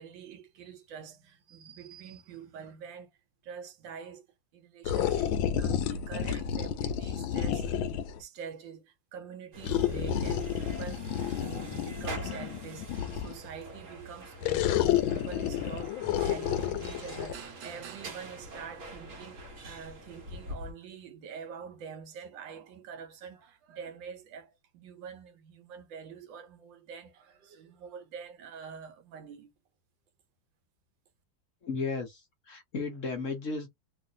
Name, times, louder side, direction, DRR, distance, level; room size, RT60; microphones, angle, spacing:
voice 1, 0.0-3.2 3.4-4.2 4.5-7.8 8.2-29.5, right 6 dB, 75° right, 1.4 m, -46 dB
sound 1, 4.8-8.2 9.6-13.5 14.4-17.3, left 9 dB, 85° left, 1.4 m, -30 dB
sound 2, 9.5-20.7, right 2 dB, 55° right, 1.0 m, -45 dB
voice 2, 31.6-32.2 32.5-33.7, left 4 dB, 55° left, 0.9 m, -34 dB
3.1 x 2.5 x 2.7 m
omnidirectional pair, 2.2 m